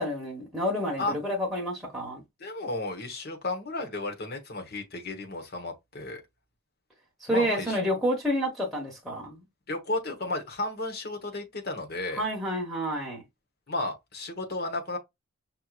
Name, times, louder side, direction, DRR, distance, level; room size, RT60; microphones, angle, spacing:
voice 1, 0.0-2.2 7.2-9.4 12.2-13.2, equal, ahead, 1.2 m, -29 dB
voice 2, 2.4-6.2 7.3-7.8 9.7-12.2 13.7-15.0, left 2 dB, 50° left, 1.1 m, -33 dB
5.5 x 3.0 x 2.4 m
head